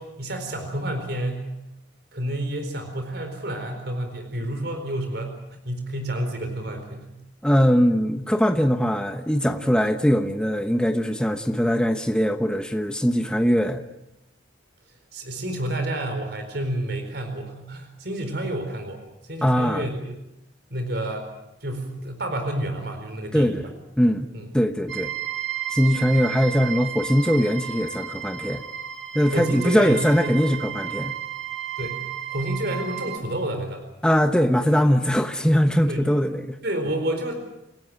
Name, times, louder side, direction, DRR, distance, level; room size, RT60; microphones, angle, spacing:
voice 1, 0.0-1.5 2.1-7.1 15.1-19.0 19.3-20.1 20.7-21.3 21.6-23.7 24.3-24.5 29.3-30.3 30.9-31.0 31.8-32.0 32.3-33.8 35.9-36.1 36.6-37.3, right 1 dB, 55° right, 6 dB, 4.3 m, -29 dB
voice 2, 7.4-13.8 19.4-19.9 23.3-23.7 24.0-24.3 24.5-25.1 25.7-28.6 29.1-31.1 34.0-36.5, equal, 5° left, 6 dB, 1.1 m, -21 dB
sound 1, 24.9-33.2, right 10 dB, 75° right, 3.4 m, -33 dB
29.0 x 16.0 x 8.8 m, 0.87 s
head